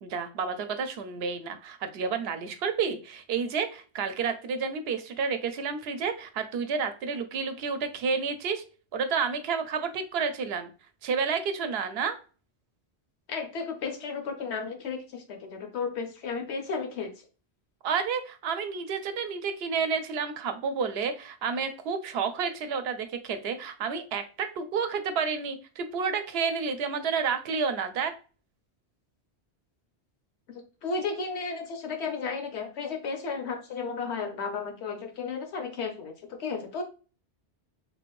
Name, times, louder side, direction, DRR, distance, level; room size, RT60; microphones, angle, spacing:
voice 1, 0.0-8.6 8.9-10.7 11.0-12.2 17.8-28.1, right 5 dB, 70° right, 9 dB, 0.8 m, -30 dB
voice 2, 13.3-17.2 30.5-36.8, left 5 dB, 80° left, 5 dB, 1.1 m, -34 dB
3.6 x 2.5 x 3.1 m, 0.36 s
omnidirectional pair, 1.1 m